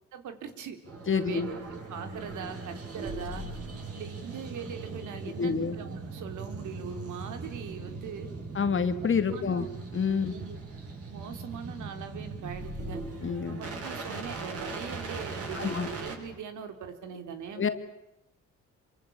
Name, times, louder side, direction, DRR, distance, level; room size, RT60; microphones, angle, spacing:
voice 1, 0.1-0.8 1.1-3.5 3.9-8.3 9.0-9.8 10.3-10.6 11.1-13.0 13.5-17.6, right 7 dB, 75° right, 7 dB, 3.5 m, -41 dB
sound 1, 0.8-16.2, right 3 dB, 50° right, 7.9 m, -39 dB
voice 2, 1.1-1.5 5.4-5.8 8.5-9.7 9.9-10.4 13.2-13.6 15.5-15.9 17.6-17.8, left 6 dB, 40° left, 9 dB, 2.4 m, -28 dB
26.5 x 24.0 x 8.6 m, 0.84 s
cardioid pair, 90°, 30 cm